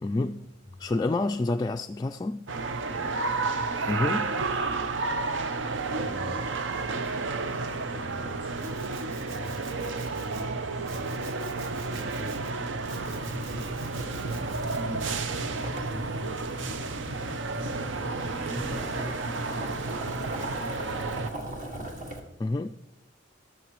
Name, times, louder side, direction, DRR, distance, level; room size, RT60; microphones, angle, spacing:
voice 1, 0.0-0.5 0.8-2.5 3.9-4.4 22.4-22.7, left 2 dB, 20° left, 0.3 m, -28 dB
sound 1, 2.5-21.3, right 3 dB, 65° right, 0.7 m, -31 dB
voice 2, 6.0-6.5 7.5-7.6 7.9-8.8 9.3-11.4 11.9-12.4 13.1-13.8 14.4-15.2 15.7-16.4 17.3-17.4 17.7-19.6 20.1-21.5, equal, 5° right, 0.7 m, -43 dB
Domestic sounds home sounds, 8.6-10.4 10.8-12.5 12.9-14.8, right 5 dB, 85° right, 1.3 m, -49 dB
Boiling, 12.8-22.2, right 1 dB, 40° right, 1.9 m, -38 dB
22.5 x 7.6 x 3.1 m
head